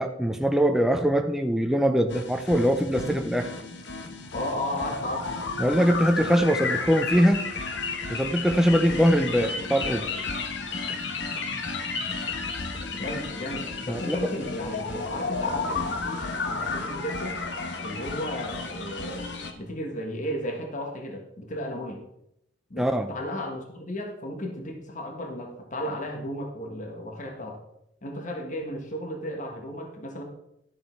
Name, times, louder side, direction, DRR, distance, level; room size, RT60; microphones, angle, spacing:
voice 1, 0.0-3.5 5.6-7.4 8.1-10.1 13.9-14.2 22.8-23.1, equal, ahead, 5 dB, 0.5 m, -22 dB
Sad Robot, 2.1-19.5, left 3 dB, 65° left, 1.1 m, -32 dB
voice 2, 4.3-5.3 12.8-17.4 17.8-19.3 19.5-22.0 22.7-27.6 28.0-30.2, left 1 dB, 40° left, 3 dB, 1.4 m, -34 dB
11.5 x 6.5 x 4.6 m, 0.80 s
head